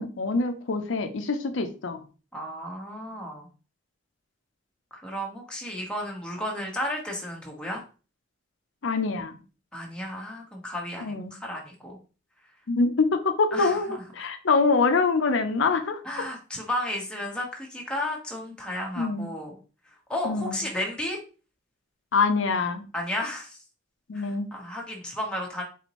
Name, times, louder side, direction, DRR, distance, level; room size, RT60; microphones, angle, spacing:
voice 1, 0.0-2.0 8.8-9.4 11.0-11.3 12.7-16.0 19.0-19.3 20.2-20.6 22.1-22.8 24.1-24.5, left 4 dB, 75° left, 7 dB, 0.6 m, -25 dB
voice 2, 2.3-3.5 4.9-7.8 9.7-12.0 13.5-14.0 16.0-19.6 20.1-21.2 22.9-23.6 24.1-25.6, left 1 dB, 5° left, -1 dB, 1.0 m, -33 dB
4.3 x 4.0 x 2.9 m, 0.36 s
head